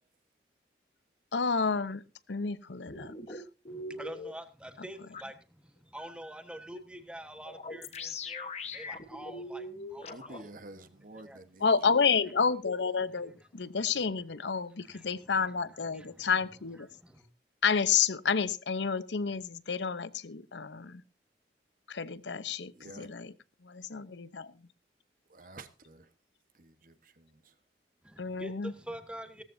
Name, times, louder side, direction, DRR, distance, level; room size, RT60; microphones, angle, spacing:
voice 1, 1.3-2.0 2.3-3.4 11.6-16.9 17.6-21.0 21.9-23.3 23.6-24.6 28.2-28.7, left 5 dB, 85° left, 0.8 m, -30 dB
sound 1, 2.9-4.3 5.1-5.2 7.5-10.4, left 3 dB, 40° left, 1.2 m, -41 dB
voice 2, 3.7-10.5 11.1-11.4 13.1-13.2 13.6-13.7 14.8-15.3 15.9-16.3 16.8-17.3 28.0-29.4, equal, 5° right, 1.3 m, -46 dB
voice 3, 10.1-11.7 22.7-23.1 25.3-26.1 26.5-27.5, right 2 dB, 50° right, 1.2 m, -50 dB
17.0 x 14.0 x 2.7 m
head